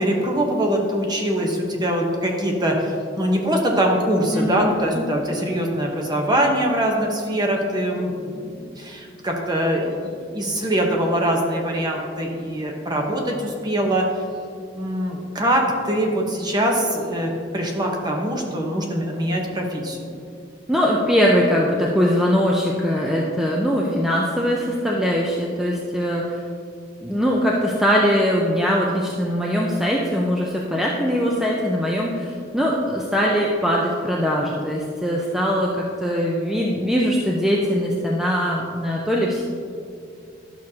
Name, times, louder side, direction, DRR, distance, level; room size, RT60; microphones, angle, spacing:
voice 1, 0.0-14.1 14.7-20.2, right 1 dB, 20° right, 1 dB, 1.0 m, -23 dB
voice 2, 4.3-5.0 20.7-26.4 27.0-39.4, equal, ahead, -3 dB, 0.5 m, -21 dB
11.0 x 6.3 x 2.8 m, 2.4 s
head